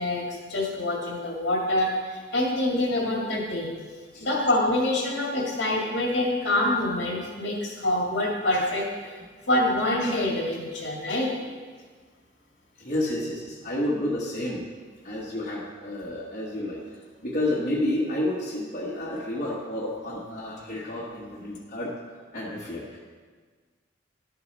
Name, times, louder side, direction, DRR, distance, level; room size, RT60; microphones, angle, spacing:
voice 1, 0.0-3.7 4.2-9.1 9.5-11.3, left 1 dB, 65° left, -2 dB, 2.0 m, -26 dB
voice 2, 12.8-14.6 15.0-16.8 17.2-21.9 22.3-23.0, left 1 dB, 40° left, -7 dB, 1.4 m, -30 dB
11.5 x 6.7 x 4.1 m, 1.5 s
head